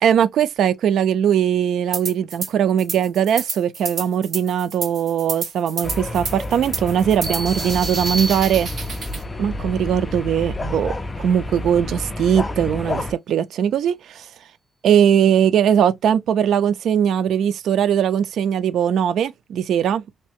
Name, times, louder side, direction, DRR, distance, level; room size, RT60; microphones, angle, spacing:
voice 1, 0.0-8.7 9.4-14.3 14.8-20.0, right 9 dB, 80° right, 0.4 m, -20 dB
sound 1, 1.9-2.5 2.8-9.2, right 4 dB, 55° right, 2.3 m, -30 dB
sound 2, 5.8-13.1, left 2 dB, 20° left, 0.4 m, -30 dB
sound 3, 7.2-9.1, right 2 dB, 20° right, 0.8 m, -30 dB
3.2 x 2.8 x 3.0 m
wide cardioid pair, 155°, 0 cm